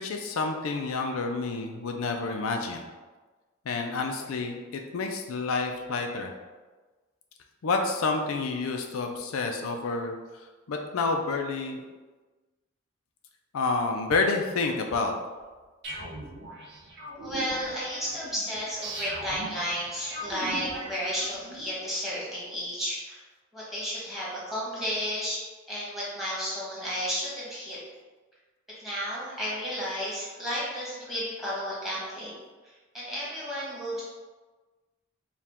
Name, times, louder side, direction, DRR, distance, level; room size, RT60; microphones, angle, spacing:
voice 1, 0.0-2.8 3.7-6.3 7.6-10.1 10.7-11.8 13.5-15.1, left 3 dB, 80° left, 3 dB, 0.4 m, -29 dB
sound 1, 15.8-21.6, right 1 dB, 55° right, 0.8 m, -40 dB
voice 2, 17.2-23.2 23.5-27.8 28.8-32.3 32.6-34.0, equal, ahead, -8 dB, 1.3 m, -33 dB
4.5 x 2.3 x 3.5 m, 1.3 s
head